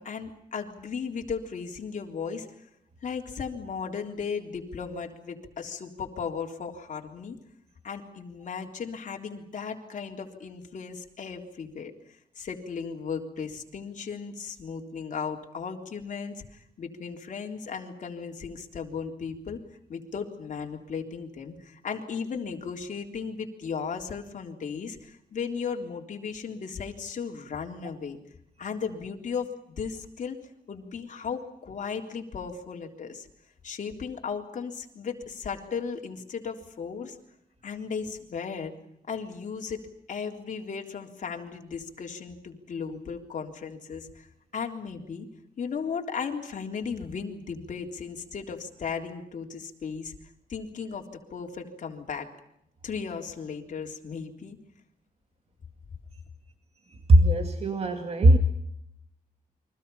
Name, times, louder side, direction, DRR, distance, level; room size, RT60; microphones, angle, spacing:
voice 1, 0.0-2.5 3.0-7.4 7.8-11.9 12.4-19.6 19.9-28.2 28.6-30.4 30.7-33.3 33.6-37.2 37.6-38.7 39.1-39.8 40.1-44.3 44.5-45.3 45.6-50.1 50.5-52.3 52.8-54.6, left 6 dB, 55° left, 2 dB, 3.7 m, -36 dB
voice 2, 57.1-58.4, right 1 dB, 40° right, 6 dB, 2.1 m, -19 dB
30.0 x 24.0 x 5.6 m, 0.74 s
wide cardioid pair, 155°, 15 cm